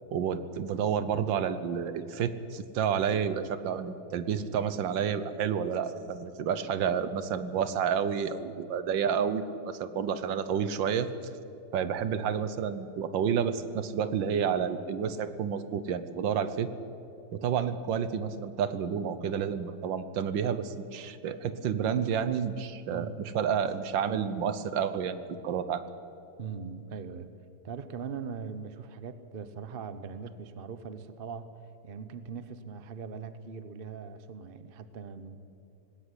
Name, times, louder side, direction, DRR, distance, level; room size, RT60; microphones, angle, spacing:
voice 1, 0.1-11.1 11.7-16.7 17.3-23.1 23.3-25.8, right 7 dB, 70° right, 13 dB, 1.6 m, -30 dB
voice 2, 22.9-23.2 26.4-27.3 27.6-31.5 31.8-35.4, right 5 dB, 45° right, 12 dB, 0.7 m, -40 dB
19.5 x 17.0 x 9.9 m, 2.9 s
omnidirectional pair, 2.2 m